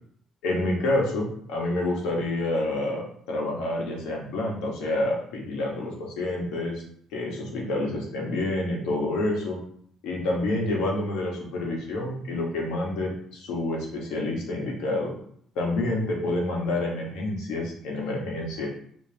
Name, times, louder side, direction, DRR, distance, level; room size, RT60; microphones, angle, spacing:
voice 1, 0.4-6.8 7.1-9.6 10.0-15.1 15.5-18.7, left 2 dB, 80° left, -1 dB, 1.3 m, -28 dB
5.1 x 2.9 x 2.8 m, 0.64 s
cardioid pair, 175°, 0 cm